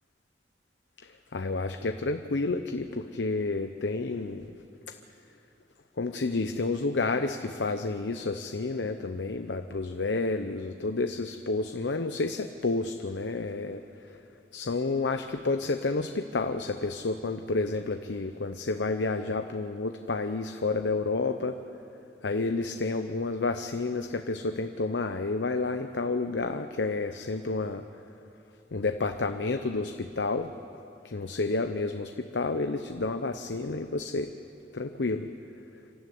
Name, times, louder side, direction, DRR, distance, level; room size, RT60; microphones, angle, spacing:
voice 1, 1.0-4.6 6.0-13.8 14.5-21.6 22.2-27.8 28.7-30.5 31.0-34.3 34.7-35.3, left 3 dB, 85° left, 7 dB, 0.8 m, -30 dB
27.0 x 13.0 x 9.5 m, 2.9 s
head